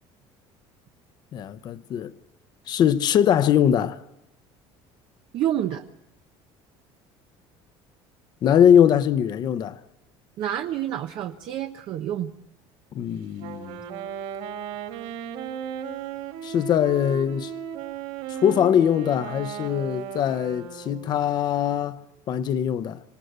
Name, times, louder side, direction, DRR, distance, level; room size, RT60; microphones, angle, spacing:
voice 1, 1.3-2.1 2.7-4.0 8.4-9.8 12.9-13.8 16.4-17.5 18.3-23.0, left 9 dB, 40° left, 0.9 m, -22 dB
voice 2, 5.3-5.8 10.4-12.3, right 11 dB, 45° right, 0.9 m, -28 dB
Wind instrument woodwind instrument, 13.3-21.2, right 8 dB, 80° right, 5.2 m, -36 dB
26.5 x 18.5 x 8.1 m
cardioid pair, 165°, 11 cm